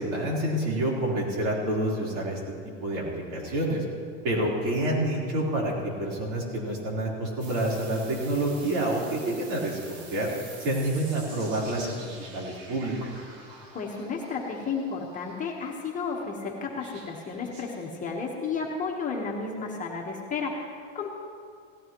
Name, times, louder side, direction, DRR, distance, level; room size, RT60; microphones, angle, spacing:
voice 1, 0.0-2.4 2.8-3.8 4.2-5.7 6.0-10.3 10.6-12.9, right 1 dB, 60° right, -3 dB, 3.9 m, -28 dB
sound 1, 7.4-15.8 16.8-17.9, right 3 dB, 90° right, 2.4 m, -47 dB
voice 2, 13.7-21.1, left 4 dB, 20° left, -1 dB, 1.2 m, -32 dB
17.0 x 14.5 x 3.0 m, 2.2 s
supercardioid pair, 150°, 37 cm